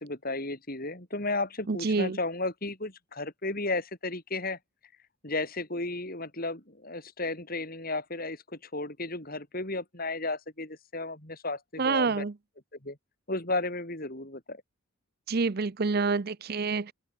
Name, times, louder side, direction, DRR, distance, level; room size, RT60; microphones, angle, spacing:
voice 1, 0.0-4.6 5.2-12.2 12.8-13.0 13.3-14.6, left 2 dB, 40° left, 4.0 m, -34 dB
voice 2, 1.7-2.2 11.8-12.3 15.3-16.9, right 4 dB, 45° right, 0.6 m, -27 dB
open air
head